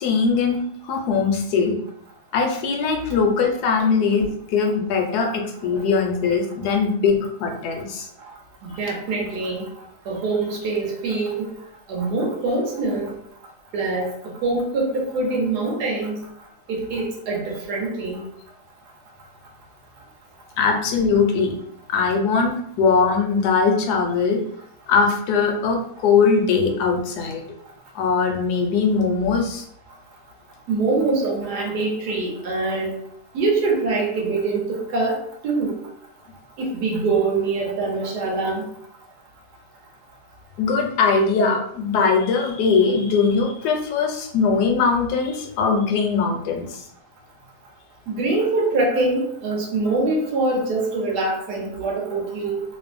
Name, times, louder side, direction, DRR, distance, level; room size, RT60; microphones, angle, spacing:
voice 1, 0.0-1.8 2.3-8.1 20.6-21.5 21.9-24.4 24.9-27.4 27.9-29.6 40.6-46.8, left 5 dB, 75° left, 2 dB, 1.0 m, -21 dB
voice 2, 8.8-9.7 10.1-11.4 11.9-13.2 13.7-14.1 14.4-16.2 16.7-18.2 30.7-32.9 33.3-35.8 36.6-38.6 48.1-52.6, right 3 dB, 70° right, 0 dB, 1.2 m, -24 dB
3.1 x 2.0 x 2.4 m, 0.69 s
omnidirectional pair, 1.9 m